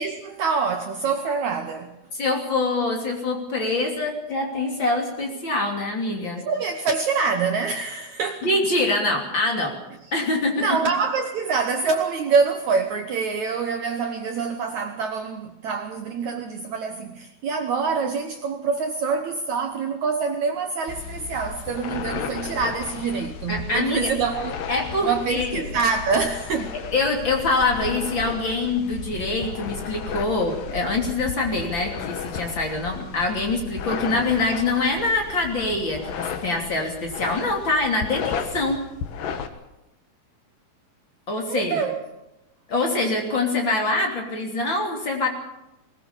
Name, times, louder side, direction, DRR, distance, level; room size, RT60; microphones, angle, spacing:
voice 1, 0.0-1.9 6.4-8.5 10.5-24.7 25.0-26.7 41.5-42.0, right 5 dB, 65° right, 2.0 m, -25 dB
voice 2, 2.1-6.4 8.4-9.8 10.1-10.8 23.5-24.1 24.7-25.6 26.9-38.8 41.3-41.8 42.7-45.3, left 2 dB, 35° left, 3.3 m, -24 dB
sound 1, 20.9-39.5, left 7 dB, 70° left, 2.9 m, -34 dB
20.5 x 19.5 x 7.1 m
omnidirectional pair, 4.3 m